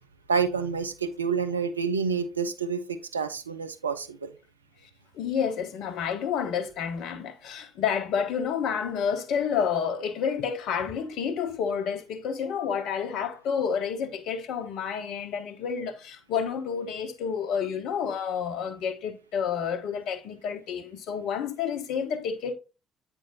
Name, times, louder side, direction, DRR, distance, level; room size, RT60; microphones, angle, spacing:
voice 1, 0.3-4.3, right 5 dB, 90° right, 0.4 m, -28 dB
voice 2, 5.1-22.5, left 7 dB, 65° left, 0.9 m, -29 dB
8.6 x 4.5 x 2.7 m
figure-of-eight pair, 45°, 0 cm